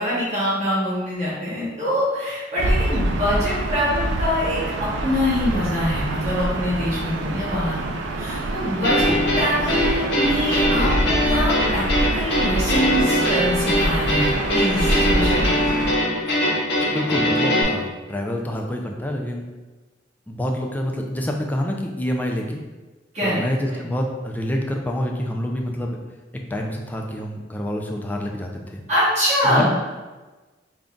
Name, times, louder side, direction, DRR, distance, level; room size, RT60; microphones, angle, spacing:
voice 1, 0.0-11.9 12.1-15.8 23.1-23.4 23.7-23.8 28.9-29.7, equal, 40° right, -9 dB, 1.4 m, -24 dB
Gull seagull / Ocean, 2.6-16.0, right 1 dB, 80° right, 0.4 m, -26 dB
sound 1, 8.8-17.6, equal, 65° left, 0.8 m, -22 dB
voice 2, 16.9-19.5 20.3-22.6 23.2-26.0 26.5-28.8 29.4-29.7, equal, 10° left, 1 dB, 0.3 m, -27 dB
3.8 x 2.3 x 3.7 m, 1.2 s
head